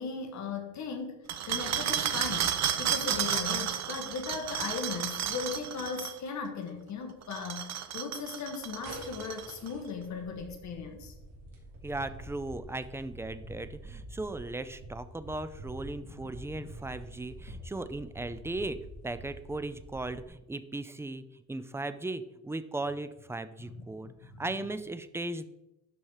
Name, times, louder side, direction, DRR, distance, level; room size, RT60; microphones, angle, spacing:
voice 1, 0.0-2.5 2.8-11.1 16.0-16.6 23.6-24.4, left 5 dB, 55° left, 4 dB, 1.4 m, -38 dB
sound 1, 1.3-6.2 7.2-9.7, right 9 dB, 50° right, 0.8 m, -32 dB
sound 2, 8.5-20.2, right 1 dB, 85° right, 3.1 m, -47 dB
voice 2, 11.8-18.8 19.0-25.4, right 2 dB, 10° right, 12 dB, 0.3 m, -37 dB
12.0 x 4.4 x 4.8 m, 0.94 s
cardioid pair, 140°, 34 cm